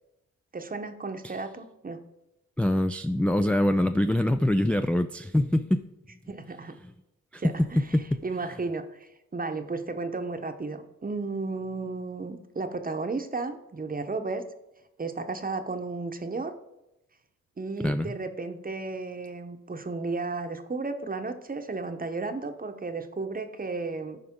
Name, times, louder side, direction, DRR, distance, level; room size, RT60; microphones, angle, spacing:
voice 1, 0.5-2.0 6.3-6.8 7.4-7.8 8.2-14.4 15.0-16.5 17.6-24.2, right 3 dB, 30° right, 7 dB, 1.0 m, -33 dB
voice 2, 2.6-5.8 6.8-6.9 7.3-7.4 7.9-8.2 17.8-18.1, left 1 dB, 5° left, 9 dB, 0.3 m, -24 dB
14.0 x 5.0 x 3.7 m, 0.92 s
cardioid pair, 65°, 30 cm